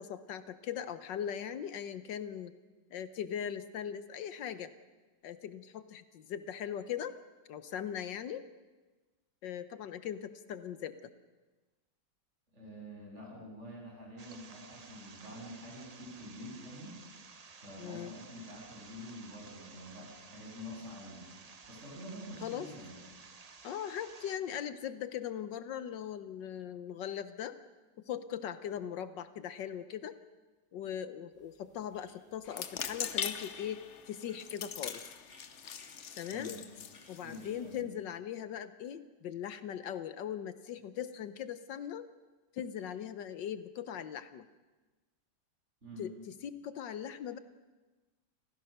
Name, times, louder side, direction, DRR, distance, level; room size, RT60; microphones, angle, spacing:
voice 1, 0.0-2.5 2.9-4.7 5.2-7.1 7.5-8.4 9.4-11.1 17.8-18.1 22.4-22.7 23.6-27.6 28.1-30.1 30.7-33.8 34.1-35.1 36.2-36.6 37.1-42.1 42.5-44.5 46.0-46.1 46.4-47.4, left 9 dB, 75° left, 12 dB, 1.5 m, -40 dB
voice 2, 12.5-17.0 17.6-21.3 21.7-23.0 36.3-36.6 37.2-37.9 45.8-46.0, left 1 dB, 35° right, -2 dB, 8.0 m, -47 dB
sound 1, 14.2-24.4, right 5 dB, 65° right, 0.3 m, -54 dB
sound 2, 31.3-37.9, left 1 dB, 30° left, 3.7 m, -62 dB
sound 3, 32.5-37.8, left 7 dB, 50° left, 0.9 m, -41 dB
28.5 x 15.5 x 6.6 m, 1.2 s
omnidirectional pair, 2.0 m